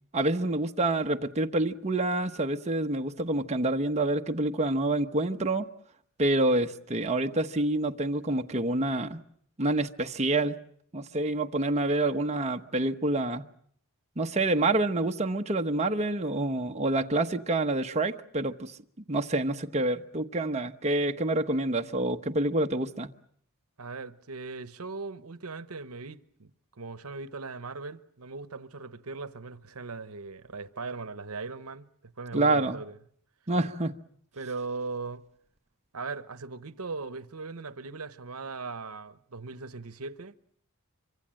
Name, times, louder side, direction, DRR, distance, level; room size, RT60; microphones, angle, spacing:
voice 1, 0.1-5.7 6.2-9.2 9.6-10.6 10.9-13.4 14.2-18.8 19.1-23.1 32.3-32.8 33.5-33.9, right 2 dB, 30° right, 1.0 m, -27 dB
voice 2, 23.8-26.5 26.8-33.0 34.3-35.2 35.9-40.4, right 4 dB, 70° right, 1.0 m, -39 dB
25.5 x 24.5 x 7.7 m
head